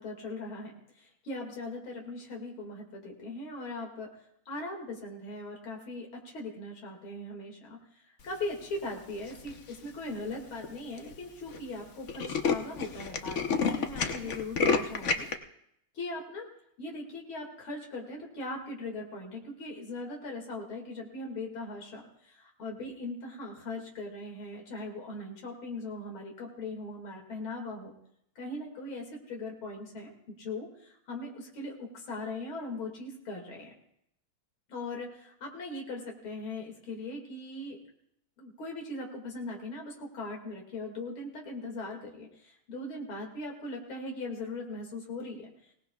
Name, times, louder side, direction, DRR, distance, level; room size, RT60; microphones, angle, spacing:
voice 1, 0.0-4.1 4.5-15.3 15.9-16.5 16.8-27.9 28.4-30.1 30.4-33.7 34.7-37.8 38.4-45.5, left 2 dB, 80° left, 0 dB, 3.0 m, -40 dB
Tools, 9.3-9.7 10.3-10.4 10.6-10.7 11.0-11.2 11.5-11.6 11.9-15.3, left 5 dB, 55° left, 0.9 m, -29 dB
23.5 x 18.0 x 2.3 m, 0.74 s
omnidirectional pair, 2.3 m